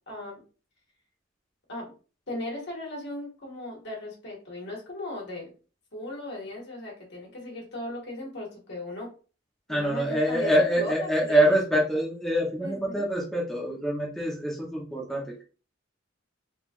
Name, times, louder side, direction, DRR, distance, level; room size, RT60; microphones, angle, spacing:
voice 1, 0.1-0.4 1.7-1.9 2.3-5.5 5.9-9.1 9.7-12.0 12.6-13.0, left 2 dB, 60° left, -2 dB, 1.7 m, -37 dB
voice 2, 9.7-15.2, right 1 dB, ahead, -3 dB, 0.8 m, -25 dB
3.7 x 3.2 x 2.5 m, 0.36 s
head